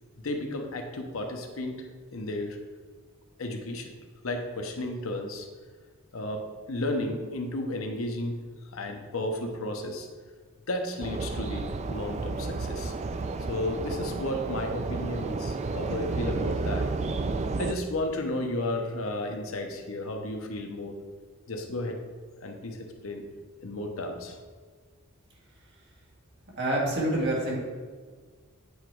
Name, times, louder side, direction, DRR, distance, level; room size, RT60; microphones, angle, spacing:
voice 1, 0.2-1.9 2.1-2.6 3.4-3.9 4.2-5.5 6.1-8.4 8.7-10.1 10.7-12.9 13.5-16.9 17.6-21.0 21.5-22.0 22.4-23.2 23.6-24.4, left 1 dB, 85° left, 4 dB, 0.8 m, -33 dB
sound 1, 11.0-17.7, right 3 dB, 35° right, 0.3 m, -31 dB
voice 2, 26.6-27.6, right 1 dB, 55° right, -4 dB, 1.9 m, -26 dB
8.1 x 3.0 x 4.6 m, 1.6 s
head